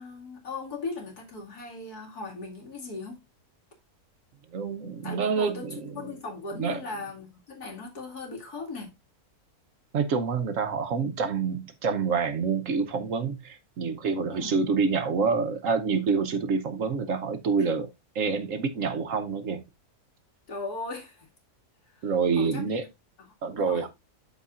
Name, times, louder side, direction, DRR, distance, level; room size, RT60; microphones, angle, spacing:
voice 1, 0.0-3.2 5.0-8.9 14.3-14.6 20.5-21.3 21.9-22.9 23.2-23.9, left 3 dB, 80° left, 2.7 m, -38 dB
voice 2, 4.5-5.7 6.6-6.8 9.9-17.9 18.1-19.6 22.0-22.8 23.4-23.9, right 5 dB, 60° right, 1.2 m, -27 dB
12.5 x 4.7 x 2.5 m
omnidirectional pair, 1.6 m